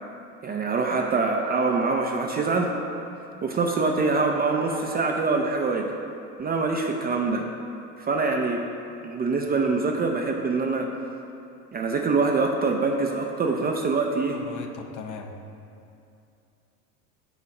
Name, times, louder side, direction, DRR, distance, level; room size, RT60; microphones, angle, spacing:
voice 1, 0.4-2.7 3.4-5.9 6.4-7.5 8.0-8.7 9.0-10.9 11.7-14.4, right 3 dB, 20° right, 2 dB, 0.4 m, -24 dB
sound 1, 0.6-3.0 3.6-6.0, right 5 dB, 65° right, 1.0 m, -38 dB
voice 2, 14.3-15.3, left 6 dB, 45° left, 4 dB, 0.7 m, -38 dB
7.0 x 4.1 x 4.8 m, 2.7 s
hypercardioid pair, 90°, 43 cm